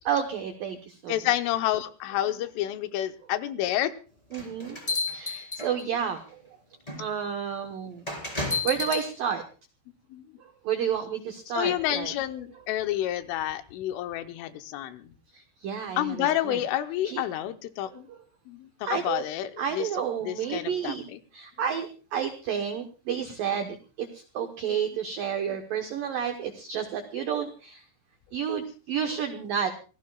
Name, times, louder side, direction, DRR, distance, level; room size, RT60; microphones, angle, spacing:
voice 1, 0.1-1.2 4.3-4.8 5.1-6.4 7.0-8.4 8.6-9.4 10.4-12.1 15.3-16.6 17.0-17.2 18.1-18.2 18.8-19.2 19.6-27.8 28.3-29.7, right 8 dB, 85° right, 5 dB, 1.9 m, -31 dB
voice 2, 1.1-3.9 10.1-10.2 11.5-15.0 16.0-18.0 18.5-21.2, left 13 dB, 80° left, 9 dB, 3.3 m, -29 dB
sound 1, 4.3-6.1 6.9-7.0 8.1-9.1, left 3 dB, 10° left, 3.1 m, -31 dB
26.0 x 16.5 x 2.4 m, 0.35 s
omnidirectional pair, 5.7 m